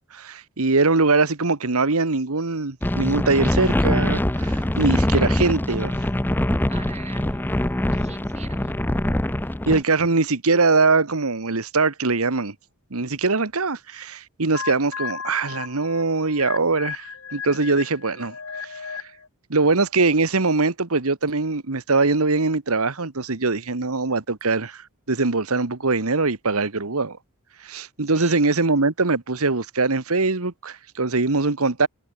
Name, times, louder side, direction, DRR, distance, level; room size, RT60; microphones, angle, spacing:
voice 1, 0.0-5.9 9.7-12.5 12.9-18.3 19.5-24.8 25.1-27.2 27.6-31.9, right 3 dB, 75° right, 1.5 m, -22 dB
sound 1, 2.8-9.8, left 1 dB, 10° left, 0.5 m, -23 dB
voice 2, 6.7-7.6 7.9-8.8 28.0-28.4, right 5 dB, 30° right, 6.3 m, -43 dB
sound 2, 14.5-19.3, left 6 dB, 65° left, 1.7 m, -35 dB
head